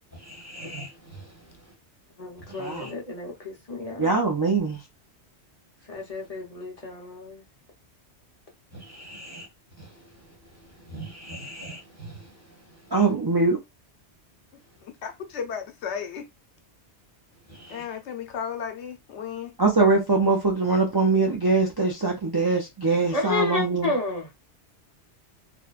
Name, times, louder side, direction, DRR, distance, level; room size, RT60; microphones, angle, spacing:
voice 1, 0.2-1.2 2.5-2.9 8.7-9.5 9.8-9.9 10.9-12.2 17.5-17.8, right 1 dB, 15° right, 1.1 m, -41 dB
voice 2, 2.2-4.1 5.9-7.4 23.1-24.3, left 3 dB, 40° left, 0.8 m, -31 dB
voice 3, 4.0-4.8 12.9-13.6 19.6-23.9, right 3 dB, 40° right, 0.3 m, -22 dB
voice 4, 15.0-16.3 17.7-19.5, left 7 dB, 80° left, 0.9 m, -34 dB
3.0 x 2.1 x 2.3 m
omnidirectional pair, 1.2 m